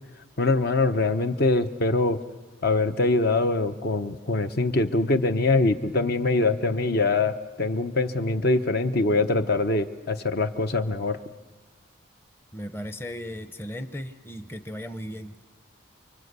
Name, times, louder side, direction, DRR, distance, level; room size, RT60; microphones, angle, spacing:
voice 1, 0.4-2.2 2.6-11.2, left 2 dB, 50° left, 8 dB, 0.9 m, -23 dB
voice 2, 12.5-15.4, equal, 10° left, 9 dB, 0.8 m, -36 dB
29.0 x 24.0 x 8.2 m, 1.3 s
head